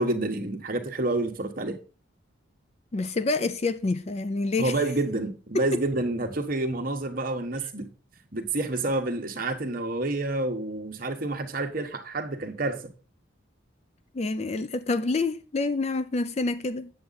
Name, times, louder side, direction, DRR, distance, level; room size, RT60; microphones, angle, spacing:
voice 1, 0.0-1.8 4.6-7.9 8.3-12.9, right 2 dB, 45° right, 1.1 m, -28 dB
voice 2, 2.9-4.7 5.5-5.7 14.1-16.9, left 3 dB, 30° left, 0.4 m, -27 dB
8.7 x 7.3 x 4.0 m
head